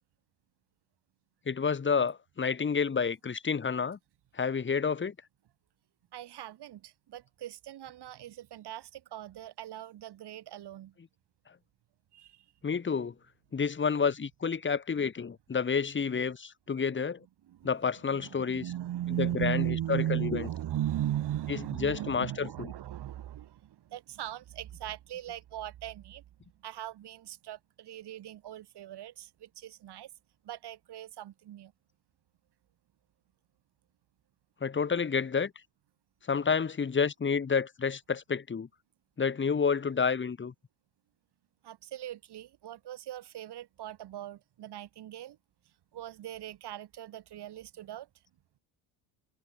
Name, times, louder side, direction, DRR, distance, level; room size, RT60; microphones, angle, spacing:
voice 1, 1.5-4.0 4.3-5.1 12.6-13.1 13.5-17.2 17.6-18.6 19.2-20.5 21.8-22.7 34.6-35.5 36.3-38.7 39.2-40.5, left 6 dB, 25° left, 1.9 m, -29 dB
voice 2, 6.1-10.9 12.1-12.4 16.8-17.0 17.5-17.7 18.1-26.2 26.6-30.1 30.4-31.7 41.6-45.4 45.9-48.1, right 12 dB, 50° right, 3.4 m, -38 dB
supercardioid pair, 90°, 49 cm